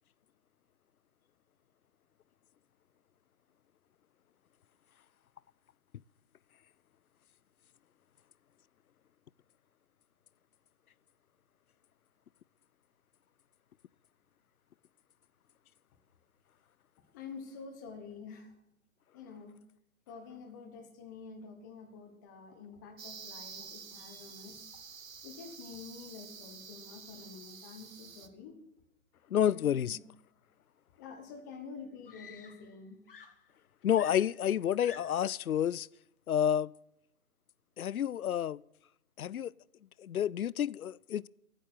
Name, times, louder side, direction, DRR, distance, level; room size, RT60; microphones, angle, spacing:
voice 1, 17.1-18.5 19.1-19.6 20.1-24.6 25.2-28.6 29.4-30.0 31.0-33.0, left 5 dB, 15° left, 1.2 m, -48 dB
sound 1, 23.0-28.3, right 6 dB, 70° right, 1.6 m, -49 dB
voice 2, 29.3-30.0 33.8-35.9 36.3-36.7 37.8-38.6 39.2-39.5 40.0-41.3, left 10 dB, 80° left, 0.6 m, -29 dB
Screaming, 31.2-31.3 32.1-32.8 33.1-35.4 36.4-36.6, left 6 dB, 40° left, 1.1 m, -52 dB
15.5 x 9.1 x 7.6 m
hypercardioid pair, 160°, 42 cm